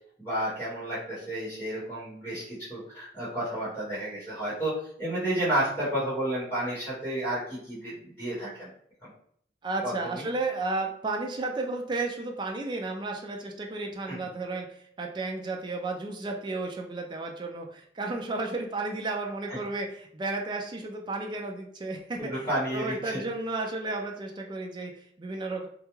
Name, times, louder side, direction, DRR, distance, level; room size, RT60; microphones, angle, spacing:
voice 1, 0.2-4.7 5.0-8.7 9.0-9.1 9.8-10.2 14.1-14.2 19.5-19.6 22.2-23.2, right 1 dB, 10° left, -11 dB, 1.1 m, -31 dB
voice 2, 9.6-22.5 22.7-25.7, right 3 dB, 25° right, 1 dB, 0.3 m, -33 dB
2.3 x 2.1 x 3.0 m, 0.65 s
head